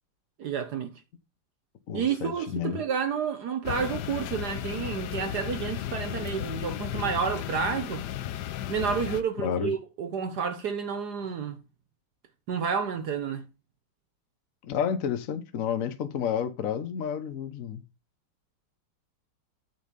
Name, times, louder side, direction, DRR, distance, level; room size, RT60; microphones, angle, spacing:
voice 1, 0.4-0.9 1.9-8.0 8.7-11.6 12.5-13.4, right 6 dB, 60° right, 1.2 m, -30 dB
voice 2, 1.9-2.8 9.4-9.7 14.6-17.8, left 8 dB, 50° left, 1.2 m, -30 dB
sound 1, 3.6-9.2, left 12 dB, 70° left, 1.0 m, -34 dB
9.3 x 3.8 x 6.7 m
omnidirectional pair, 2.4 m